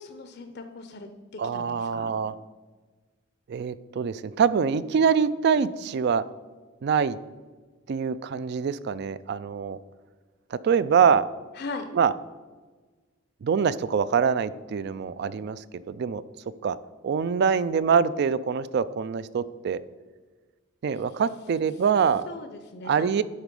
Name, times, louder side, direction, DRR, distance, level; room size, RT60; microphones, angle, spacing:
voice 1, 0.0-2.1 11.6-11.9 22.3-23.2, left 3 dB, 50° left, 7 dB, 0.5 m, -39 dB
voice 2, 1.4-2.3 3.5-6.2 6.8-7.2 7.9-9.8 10.5-11.3 11.9-12.1 13.4-16.2 16.6-16.8 17.0-19.8 20.8-22.3 22.8-23.2, right 6 dB, 55° right, 16 dB, 0.3 m, -24 dB
10.5 x 4.1 x 5.2 m, 1.4 s
head